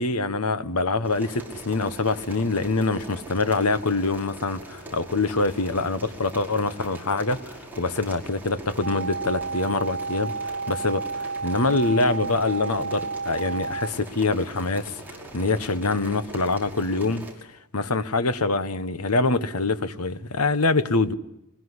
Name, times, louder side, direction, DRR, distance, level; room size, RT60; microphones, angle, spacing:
voice 1, 0.0-10.3 10.7-17.2 17.7-21.1, left 3 dB, 85° left, 1.4 m, -25 dB
sound 1, 1.0-17.3, right 1 dB, 10° right, 5.5 m, -42 dB
sound 2, 8.8-13.9, right 4 dB, 55° right, 0.9 m, -31 dB
23.5 x 21.0 x 9.9 m
head